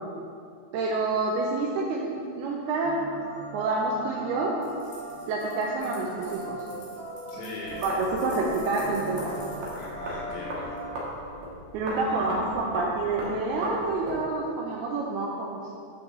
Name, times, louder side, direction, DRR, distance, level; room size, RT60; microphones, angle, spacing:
voice 1, 0.7-3.0 3.5-4.6 5.3-6.6 7.8-9.4 11.7-15.6, right 3 dB, 90° right, -2 dB, 2.2 m, -28 dB
sound 1, 2.8-10.9, right 1 dB, 45° left, 2.2 m, -40 dB
sound 2, 4.6-10.9, left 3 dB, 65° left, 3.5 m, -50 dB
voice 2, 7.3-7.9 9.7-10.7 11.8-12.4, left 3 dB, 85° left, -4 dB, 3.4 m, -40 dB
sound 3, 7.6-14.2, equal, 70° right, 1.7 m, -37 dB
8.8 x 6.3 x 3.7 m, 2.3 s
omnidirectional pair, 5.3 m